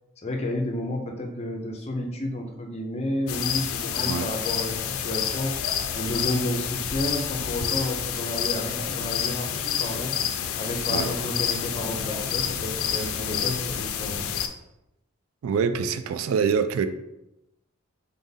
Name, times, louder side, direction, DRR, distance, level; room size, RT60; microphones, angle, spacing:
voice 1, 0.2-5.6 5.9-10.2 10.6-14.3 15.7-15.8, left 1 dB, 30° left, 0.5 m, -31 dB
sound 1, 3.3-14.5, left 8 dB, 80° left, 0.4 m, -29 dB
voice 2, 15.4-16.9, right 6 dB, 80° right, 0.3 m, -25 dB
3.9 x 3.6 x 2.7 m
head